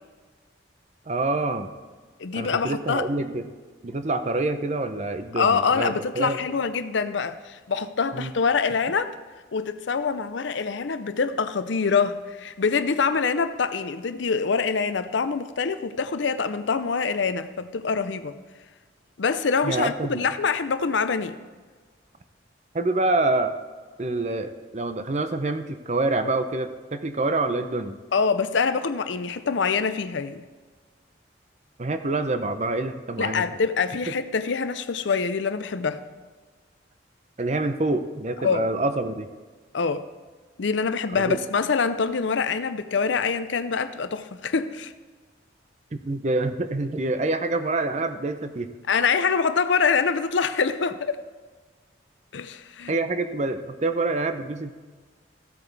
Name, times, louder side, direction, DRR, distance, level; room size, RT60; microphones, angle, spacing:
voice 1, 1.1-1.7 2.3-3.5 3.8-6.5 8.1-8.3 19.6-20.2 22.7-23.5 24.0-28.0 31.8-33.4 37.4-39.3 41.1-41.4 45.9-48.7 52.9-54.7, right 2 dB, 35° right, 0.6 m, -26 dB
voice 2, 2.2-3.1 5.4-9.2 9.5-18.3 19.2-21.4 28.1-30.4 33.2-36.0 38.4-38.7 39.7-40.0 40.6-44.9 48.9-51.2 52.3-52.9, left 5 dB, 75° left, 0.6 m, -25 dB
15.0 x 8.5 x 3.4 m
head